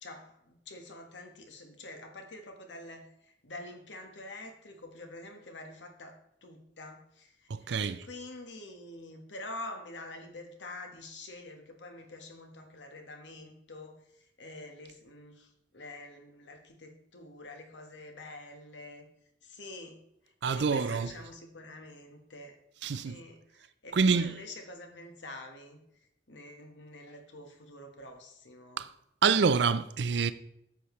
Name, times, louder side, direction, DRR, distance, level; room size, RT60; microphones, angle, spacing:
voice 1, 0.0-7.5 7.8-19.1 19.4-22.6 22.9-23.4 23.8-25.8 26.3-28.8, left 2 dB, 75° left, 1.4 m, -46 dB
voice 2, 7.5-7.9 20.4-21.1 22.8-23.2 23.9-24.4 28.8-28.9 29.2-30.3, right 5 dB, 65° right, 0.5 m, -26 dB
9.9 x 7.1 x 3.2 m
head